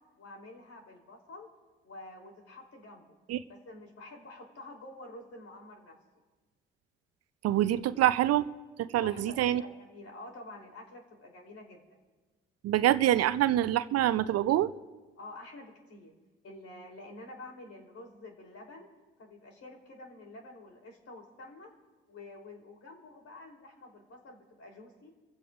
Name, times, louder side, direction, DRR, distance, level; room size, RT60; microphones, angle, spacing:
voice 1, 0.2-1.5 1.8-3.2 3.5-5.9 9.0-11.8 15.2-16.1 16.4-18.9 19.2-21.7 22.1-25.1, left 2 dB, 55° left, 1 dB, 3.5 m, -48 dB
voice 2, 7.4-8.5 8.8-9.6 12.6-14.7, right 13 dB, 55° right, 14 dB, 0.6 m, -25 dB
28.0 x 15.0 x 2.5 m, 1.3 s
hypercardioid pair, 50°, 29 cm